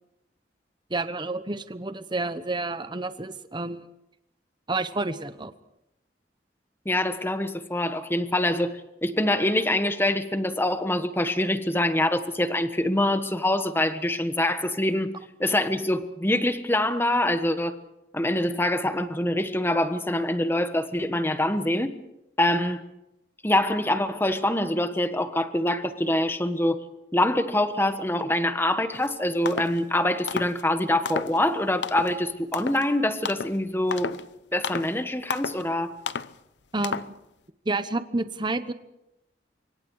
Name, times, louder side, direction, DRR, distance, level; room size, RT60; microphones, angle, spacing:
voice 1, 0.9-3.9 4.7-5.5 36.7-37.1 37.6-38.7, right 2 dB, 25° right, 12 dB, 1.0 m, -29 dB
voice 2, 6.8-15.1 15.4-17.8 18.1-21.9 22.4-22.8 23.4-26.8 27.1-34.2 34.5-36.0, left 1 dB, 15° left, 9 dB, 1.3 m, -25 dB
sound 1, 28.9-29.1 29.5-29.8 30.3-30.6 31.1-31.4 31.8-32.2 32.5-32.9 33.2-33.6 33.9-34.3 34.6-34.9 35.3-35.6 36.1-36.3 36.8-37.2, left 5 dB, 80° left, 0.8 m, -32 dB
26.0 x 24.0 x 4.8 m, 0.88 s
head